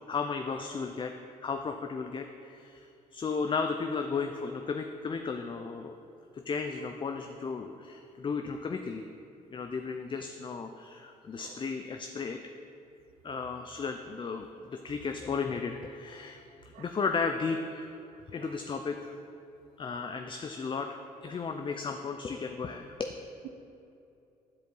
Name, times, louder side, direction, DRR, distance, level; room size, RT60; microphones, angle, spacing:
voice 1, 0.1-1.1 1.4-6.0 6.3-9.0 9.5-12.4 13.2-17.8 18.3-19.1 19.8-23.2, left 5 dB, 30° left, 6 dB, 0.4 m, -34 dB
voice 2, 3.3-3.4 11.4-11.6 16.7-16.9 18.4-18.6 20.2-20.3 21.3-21.4, right 11 dB, 75° right, 10 dB, 0.5 m, -54 dB
10.5 x 4.9 x 3.9 m, 2.7 s
supercardioid pair, 65°, 16 cm